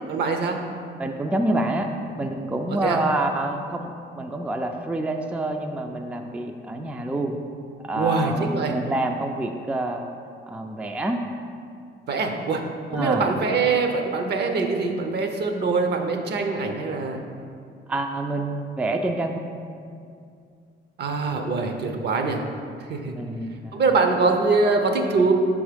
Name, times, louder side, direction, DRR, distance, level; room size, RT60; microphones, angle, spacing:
voice 1, 0.1-0.6 2.7-3.0 7.9-8.7 12.1-12.6 12.9-17.2 21.0-22.4 22.9-23.1 23.7-25.3, right 4 dB, 55° right, 4 dB, 0.7 m, -23 dB
voice 2, 1.0-1.9 2.2-7.4 7.8-10.1 10.5-11.2 12.9-13.3 17.9-19.5 23.1-23.8, right 2 dB, 5° right, 4 dB, 0.3 m, -27 dB
5.6 x 3.5 x 5.1 m, 2.3 s
cardioid pair, 90°, 20 cm